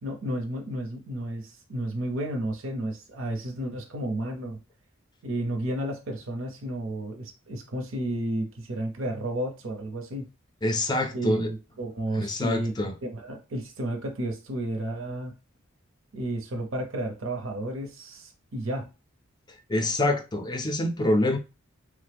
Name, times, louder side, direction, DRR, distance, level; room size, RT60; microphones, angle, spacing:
voice 1, 0.0-4.6 5.2-10.2 11.1-12.7 13.0-15.3 16.1-18.9, right 1 dB, 70° right, 0.6 m, -32 dB
voice 2, 10.6-11.5 12.1-12.9 19.7-21.4, left 1 dB, 20° left, 0.4 m, -26 dB
3.1 x 2.0 x 3.3 m
head